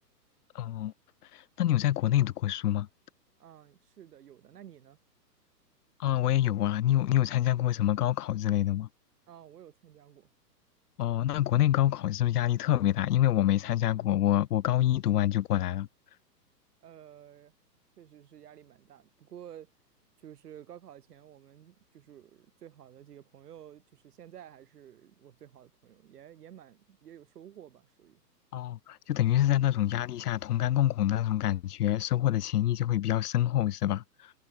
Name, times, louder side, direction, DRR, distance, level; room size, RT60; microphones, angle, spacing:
voice 1, 0.5-0.9 1.3-2.9 6.0-8.9 11.0-15.9 28.5-34.3, left 12 dB, 65° left, 1.0 m, -26 dB
voice 2, 3.4-5.0 9.3-10.3 16.8-17.5 18.0-19.7 20.2-28.2, right 10 dB, 65° right, 5.4 m, -51 dB
hypercardioid pair, 135°, 50 cm